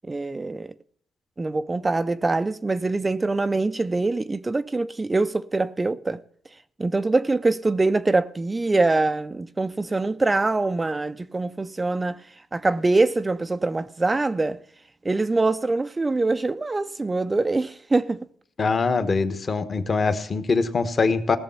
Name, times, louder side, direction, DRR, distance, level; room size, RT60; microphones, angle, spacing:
voice 1, 0.0-0.7 1.4-6.2 6.8-12.2 12.5-14.6 15.0-18.2, right 3 dB, 20° right, 0.5 m, -24 dB
voice 2, 18.6-21.4, left 4 dB, 40° left, 1.3 m, -23 dB
17.0 x 7.0 x 5.7 m
cardioid pair, 90°, 0 cm